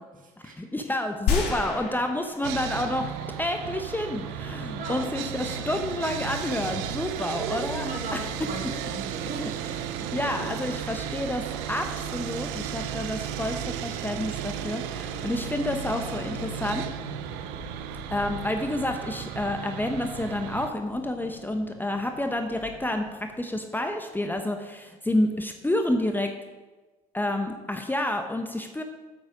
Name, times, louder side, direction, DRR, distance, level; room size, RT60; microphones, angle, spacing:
voice 1, 0.0-0.7 4.8-5.1 7.2-9.5, right 4 dB, 45° right, 2 dB, 2.2 m, -37 dB
voice 2, 0.6-3.1 3.4-7.8 8.1-8.2 10.1-16.8 18.1-26.3 27.1-28.8, left 1 dB, 10° left, 5 dB, 1.0 m, -29 dB
sound 1, 1.3-3.0 3.5-3.6, left 6 dB, 60° left, 2.4 m, -29 dB
Sawing, 2.4-20.7, right 10 dB, 65° right, 0.6 m, -35 dB
sound 2, 4.1-23.4, left 5 dB, 75° left, 1.7 m, -45 dB
8.8 x 8.6 x 5.0 m, 1.2 s
figure-of-eight pair, 50°, 19 cm